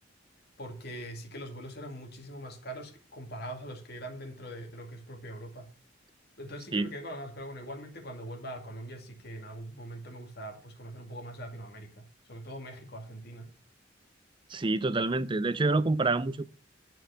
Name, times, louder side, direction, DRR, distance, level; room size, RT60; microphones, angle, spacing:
voice 1, 0.6-5.7 6.4-13.5, right 1 dB, 55° left, 2.2 m, -42 dB
voice 2, 14.5-16.5, right 3 dB, 25° right, 0.5 m, -27 dB
10.5 x 4.7 x 7.0 m
head